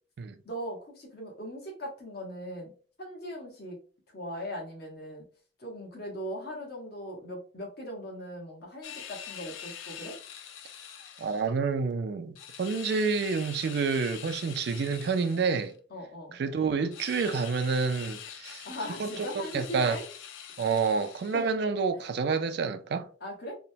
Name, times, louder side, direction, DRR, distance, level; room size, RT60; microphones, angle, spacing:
voice 1, 0.4-2.7 3.0-3.8 4.1-5.2 5.6-10.2 15.9-16.4 18.6-20.1 21.3-21.4 23.2-23.6, equal, 50° left, 0.9 m, -39 dB
sound 1, 8.8-11.5 12.4-15.8 16.9-21.6, left 9 dB, 70° left, 0.3 m, -44 dB
voice 2, 11.2-15.7 16.3-18.7 19.0-20.0 20.6-23.1, right 5 dB, 55° right, 0.3 m, -28 dB
3.0 x 2.1 x 2.6 m
head